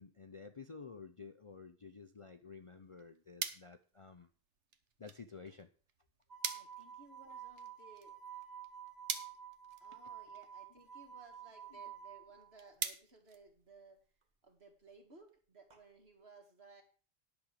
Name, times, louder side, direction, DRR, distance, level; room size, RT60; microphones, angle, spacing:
voice 1, 0.0-4.3 5.0-5.7 11.7-11.8, left 5 dB, 35° left, 8 dB, 0.6 m, -52 dB
sound 1, 2.6-14.1, right 6 dB, 90° right, 1.4 m, -47 dB
sound 2, 6.3-12.5 15.7-15.8, right 9 dB, 40° right, 1.3 m, -50 dB
voice 2, 6.5-8.1 9.8-14.0 14.4-16.8, right 3 dB, 65° right, 3 dB, 2.5 m, -60 dB
10.5 x 6.4 x 7.3 m, 0.39 s
omnidirectional pair, 1.2 m